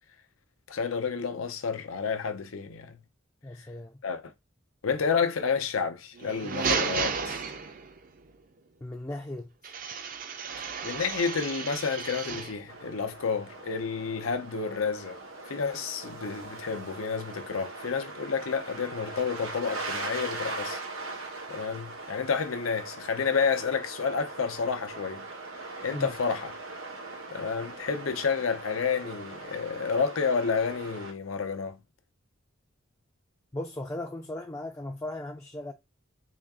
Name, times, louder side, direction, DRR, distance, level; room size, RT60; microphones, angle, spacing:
voice 1, 0.7-3.0 4.0-4.2 4.8-7.4 10.6-15.2 15.5-20.8 21.5-25.3 25.8-26.5 27.3-31.8, left 5 dB, 90° left, 0.6 m, -30 dB
voice 2, 3.4-4.0 8.8-9.7 25.9-26.1 33.5-35.7, left 1 dB, 15° left, 0.3 m, -37 dB
sound 1, 6.1-8.1 9.6-12.6, right 5 dB, 45° right, 0.5 m, -33 dB
sound 2, 12.7-31.1, right 3 dB, 90° right, 1.0 m, -40 dB
3.8 x 2.3 x 3.6 m
head